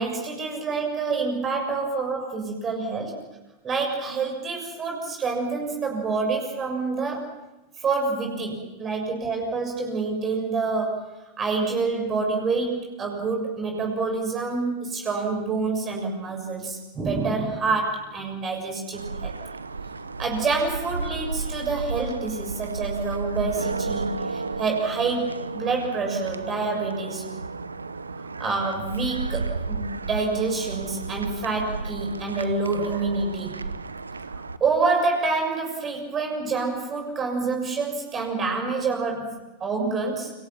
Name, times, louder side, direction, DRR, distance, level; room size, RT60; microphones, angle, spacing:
voice 1, 0.0-3.1 3.6-7.3 7.8-11.1 11.4-19.3 20.2-27.3 28.4-33.6 34.6-40.3, right 4 dB, 25° right, 2 dB, 6.8 m, -27 dB
sound 1, 18.9-34.6, right 3 dB, 80° right, 1.1 m, -33 dB
29.5 x 27.0 x 6.0 m, 1.0 s
figure-of-eight pair, 90°, 0 cm